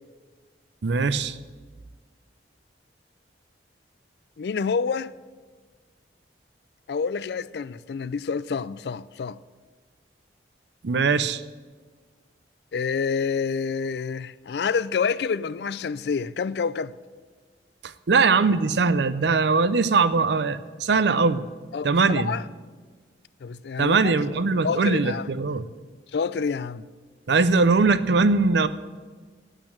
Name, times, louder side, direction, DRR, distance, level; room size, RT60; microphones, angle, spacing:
voice 1, 0.8-1.4 10.8-11.4 17.8-21.4 21.8-22.3 23.8-25.6 27.3-28.7, right 4 dB, 70° right, 0.5 m, -21 dB
voice 2, 4.4-5.1 6.9-9.4 12.7-16.9 21.7-22.4 23.4-24.1 24.6-25.2 26.1-26.8, left 5 dB, 65° left, 0.4 m, -28 dB
8.9 x 8.4 x 8.5 m
head